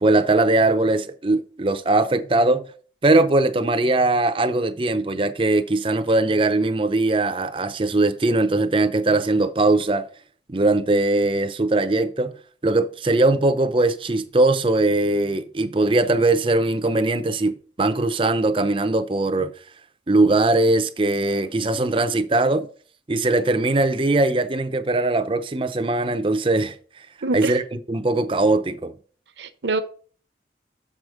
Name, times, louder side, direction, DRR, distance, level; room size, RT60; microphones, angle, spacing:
voice 1, 0.0-2.6 3.0-10.1 10.5-12.3 12.6-19.5 20.1-22.7 23.1-26.8 27.3-27.6 27.9-28.9, right 2 dB, 30° right, 0.6 m, -20 dB
voice 2, 27.2-27.6 29.4-29.8, right 3 dB, 70° right, 0.8 m, -25 dB
7.0 x 4.9 x 6.2 m
head